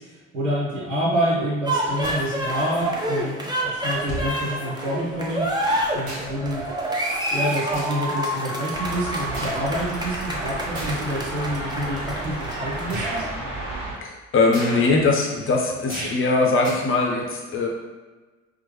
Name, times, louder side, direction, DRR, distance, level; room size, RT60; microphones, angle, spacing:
voice 1, 0.0-5.5 5.9-6.7 7.3-13.3, equal, 85° right, -5 dB, 0.9 m, -27 dB
sound 1, 1.7-13.3, right 1 dB, 10° right, 0.7 m, -28 dB
sound 2, 2.0-2.3 3.3-3.4 4.1-4.3 5.5-6.4 6.8-7.0 7.6-8.1 8.5-9.6 10.7-11.0 11.7-11.8 12.8-13.2 14.5-14.9 15.9-16.3 16.6-16.7, right 1 dB, 65° right, 1.1 m, -35 dB
sound 3, 8.7-13.9, right 2 dB, 45° right, 1.3 m, -32 dB
voice 2, 14.0-17.7, left 3 dB, 35° left, 0 dB, 0.8 m, -21 dB
4.6 x 2.1 x 3.1 m, 1.3 s
figure-of-eight pair, 50°, 37 cm